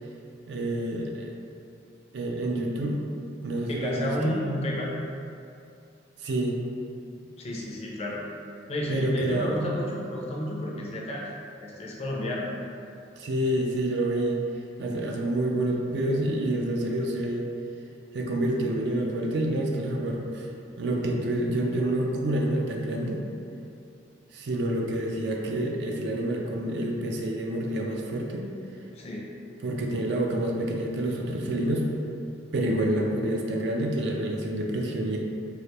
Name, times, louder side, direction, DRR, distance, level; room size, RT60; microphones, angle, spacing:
voice 1, 0.5-1.3 2.1-3.0 3.4-4.3 6.2-6.6 8.9-9.7 13.2-14.4 14.8-17.5 18.1-20.5 20.8-23.2 24.3-28.5 29.6-31.9 32.5-35.2, right 1 dB, 60° right, 0 dB, 0.4 m, -28 dB
voice 2, 3.7-4.9 7.4-8.2 8.7-11.3 11.6-12.5 28.9-29.3, left 1 dB, 35° left, -3 dB, 0.4 m, -31 dB
3.2 x 2.4 x 2.9 m, 2.6 s
head